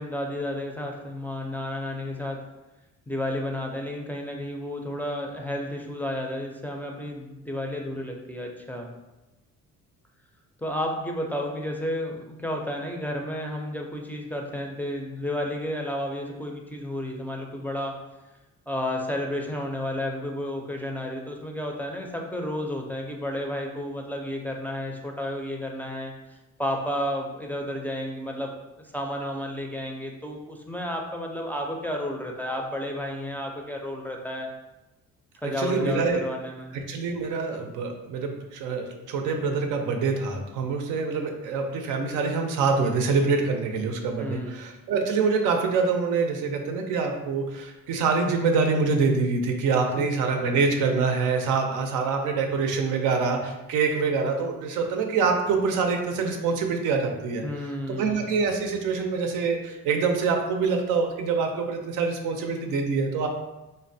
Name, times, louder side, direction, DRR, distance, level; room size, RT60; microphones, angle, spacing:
voice 1, 0.0-2.4 3.1-8.9 10.6-17.9 18.7-28.5 28.9-34.5 35.4-36.8 44.2-44.7 50.0-50.1 57.4-58.4, left 1 dB, 5° left, 0 dB, 0.4 m, -32 dB
voice 2, 35.6-36.2 36.7-57.4 58.0-63.3, right 4 dB, 90° right, 3 dB, 0.5 m, -25 dB
3.8 x 2.1 x 2.6 m, 1.0 s
cardioid pair, 90°, 30 cm